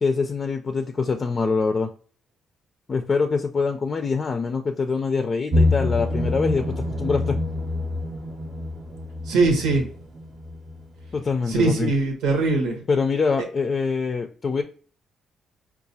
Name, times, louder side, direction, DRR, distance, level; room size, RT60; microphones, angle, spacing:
voice 1, 0.0-1.9 2.9-7.4 11.1-11.9 12.9-14.6, left 4 dB, 40° left, 5 dB, 0.4 m, -24 dB
sound 1, 5.5-11.3 11.6-11.7, left 2 dB, 40° right, 0.6 m, -26 dB
voice 2, 9.2-9.9 11.5-12.8, right 3 dB, 90° right, 2 dB, 1.0 m, -21 dB
4.7 x 2.4 x 2.6 m, 0.42 s
cardioid pair, 90°, 0 cm